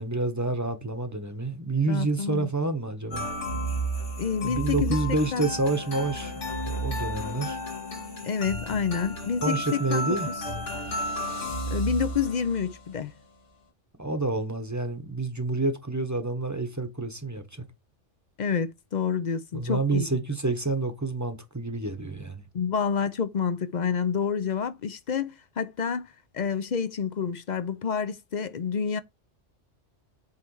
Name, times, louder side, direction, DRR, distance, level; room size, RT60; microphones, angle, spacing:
voice 1, 0.0-3.3 4.4-6.3 6.7-7.6 9.4-10.3 14.0-17.6 19.5-22.5, right 3 dB, 15° right, 0.9 m, -28 dB
voice 2, 1.9-2.5 4.2-5.5 8.2-9.6 9.9-10.2 11.7-13.1 18.4-20.1 22.5-26.1 26.3-29.0, left 6 dB, 50° left, 0.6 m, -28 dB
sound 1, 3.1-12.8, equal, 85° left, 2.3 m, -32 dB
8.2 x 3.2 x 4.7 m
omnidirectional pair, 1.2 m